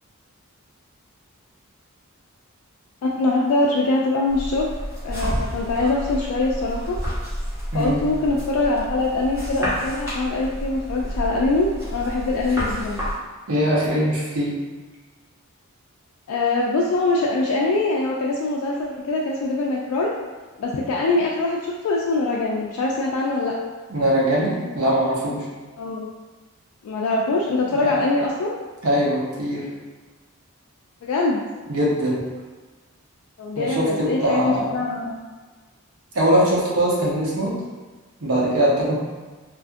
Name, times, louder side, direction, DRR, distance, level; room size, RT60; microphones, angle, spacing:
voice 1, 3.0-4.7 5.0-7.0 7.7-13.0 16.3-20.1 20.6-23.6 25.8-26.1 26.8-28.5 31.0-31.4 33.4-35.2, left 2 dB, 75° left, -2 dB, 0.3 m, -23 dB
sound 1, 4.3-13.2, equal, 10° right, 0.7 m, -30 dB
voice 2, 7.7-8.0 13.5-14.6 23.9-25.4 27.7-27.9 28.8-29.7 31.7-32.2 33.6-34.8 36.1-37.5 38.2-38.9, right 1 dB, 75° right, -5 dB, 0.8 m, -21 dB
2.5 x 2.4 x 2.5 m, 1.3 s
head